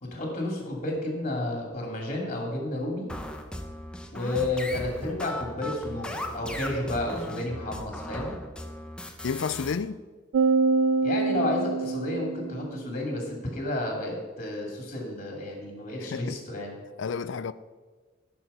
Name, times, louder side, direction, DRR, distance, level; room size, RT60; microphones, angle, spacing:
voice 1, 0.0-3.1 4.1-8.3 11.0-16.7, left 1 dB, 35° left, 2.6 m, -31 dB
sound 1, 3.1-9.7, left 1 dB, 5° left, 0.9 m, -37 dB
voice 2, 9.2-10.0 16.0-16.4 17.0-17.5, left 5 dB, 75° left, 0.4 m, -31 dB
sound 2, 10.3-12.9, right 4 dB, 85° right, 0.3 m, -25 dB
14.0 x 6.2 x 5.5 m
head